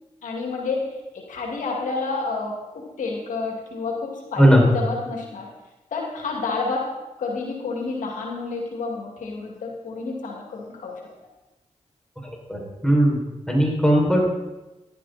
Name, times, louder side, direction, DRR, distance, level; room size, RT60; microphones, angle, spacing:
voice 1, 0.2-0.9 1.1-4.5 4.7-5.5 5.9-6.9 7.2-11.0, left 4 dB, 85° left, 0 dB, 2.4 m, -29 dB
voice 2, 4.4-4.7 12.5-13.2 13.5-14.3, equal, 5° left, -1 dB, 6.0 m, -17 dB
15.5 x 11.5 x 4.3 m, 1.1 s
cardioid pair, 45°, 13 cm